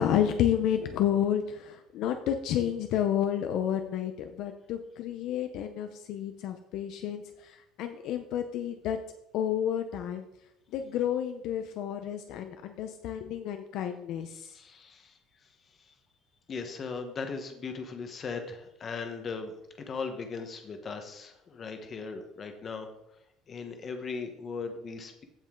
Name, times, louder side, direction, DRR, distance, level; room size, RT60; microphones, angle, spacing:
voice 1, 0.0-9.0 9.3-10.3 10.7-14.6, left 10 dB, 50° left, 7 dB, 0.7 m, -30 dB
voice 2, 14.3-15.2 15.8-15.9 16.5-22.9 23.5-25.2, left 5 dB, 25° left, 6 dB, 1.2 m, -38 dB
15.0 x 5.4 x 3.8 m, 0.85 s
cardioid pair, 170°, 0 cm